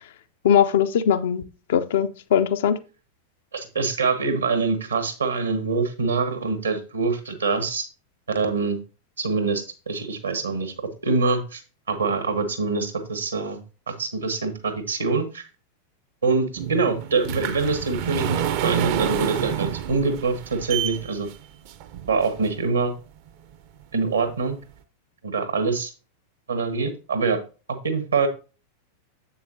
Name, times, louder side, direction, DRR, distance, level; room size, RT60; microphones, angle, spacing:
voice 1, 0.4-1.4 1.7-2.8, left 8 dB, 60° left, 0.5 m, -20 dB
voice 2, 3.5-7.8 8.3-8.8 9.2-10.7 11.0-11.6 11.9-13.6 13.9-15.4 16.2-21.3 22.1-22.9 23.9-24.6 25.2-25.9 26.5-27.4 27.8-28.3, right 4 dB, 75° right, 1.3 m, -24 dB
sound 1, 16.6-22.7 23.3-23.4 23.9-24.0 24.3-24.4, right 9 dB, 50° right, 0.6 m, -28 dB
7.5 x 7.0 x 2.7 m
figure-of-eight pair, 90°, 0 cm